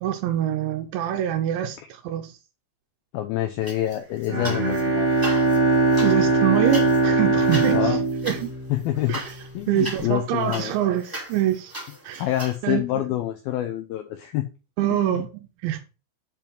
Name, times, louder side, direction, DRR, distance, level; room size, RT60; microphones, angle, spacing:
voice 1, 0.0-2.4 6.0-8.5 9.1-9.3 9.7-11.7 12.0-12.3 12.6-12.8 14.8-15.3 15.6-15.8, right 12 dB, 85° right, 3.0 m, -25 dB
voice 2, 3.1-5.1 7.7-8.0 8.7-9.2 9.5-10.7 12.2-14.4 14.9-15.2, left 13 dB, 90° left, 2.1 m, -27 dB
sound 1, 3.6-4.8 5.1-12.6, right 1 dB, 10° right, 1.1 m, -38 dB
Bowed string instrument, 4.3-9.2, right 3 dB, 25° right, 1.6 m, -21 dB
7.6 x 4.6 x 5.2 m
omnidirectional pair, 5.2 m